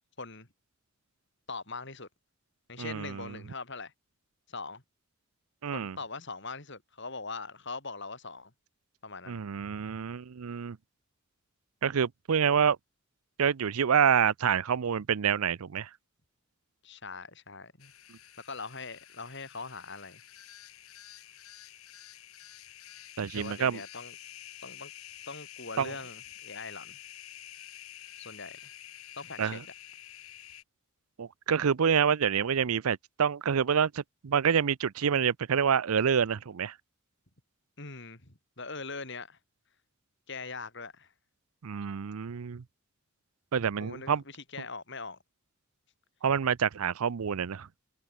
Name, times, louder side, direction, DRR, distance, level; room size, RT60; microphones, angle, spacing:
voice 1, 0.2-0.5 1.5-2.1 2.7-3.9 4.5-4.8 5.7-8.5 9.0-9.4 16.8-17.9 18.4-20.2 23.3-24.2 24.6-24.9 25.3-27.0 28.2-28.7 29.2-29.6 37.8-39.4 40.3-41.1 43.8-45.2, left 4 dB, 55° left, 5.0 m, -41 dB
voice 2, 2.8-3.3 5.6-6.0 9.3-10.8 11.8-12.8 13.4-15.9 23.2-23.8 25.8-25.9 29.4-29.6 31.2-36.7 41.6-42.6 43.5-44.2 46.2-47.7, right 7 dB, 90° right, 0.5 m, -27 dB
sound 1, 17.8-30.6, left 11 dB, 85° left, 2.3 m, -49 dB
head